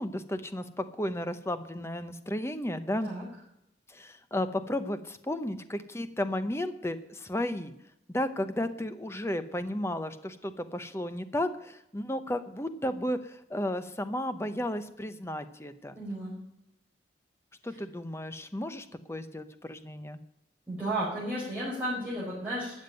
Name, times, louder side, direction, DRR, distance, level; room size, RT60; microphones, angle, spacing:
voice 1, 0.0-3.1 3.9-7.7 8.1-16.0 17.6-20.2, left 1 dB, 15° left, 10 dB, 0.8 m, -33 dB
voice 2, 16.0-16.3 20.7-22.8, right 1 dB, 10° right, -10 dB, 5.3 m, -33 dB
13.0 x 7.4 x 9.2 m, 0.81 s
head